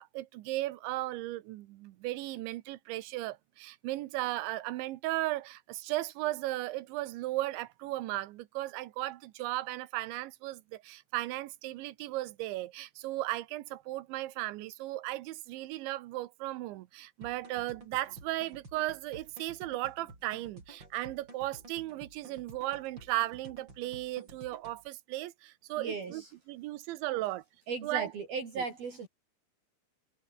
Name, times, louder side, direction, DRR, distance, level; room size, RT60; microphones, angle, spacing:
voice 1, 0.0-26.2 26.5-27.4 27.8-28.1 28.6-28.7, right 17 dB, 80° right, 3.2 m, -36 dB
sound 1, 17.2-24.9, right 2 dB, 25° right, 6.8 m, -53 dB
voice 2, 25.8-26.3 27.7-29.1, right 5 dB, 55° right, 5.8 m, -36 dB
omnidirectional pair, 5.5 m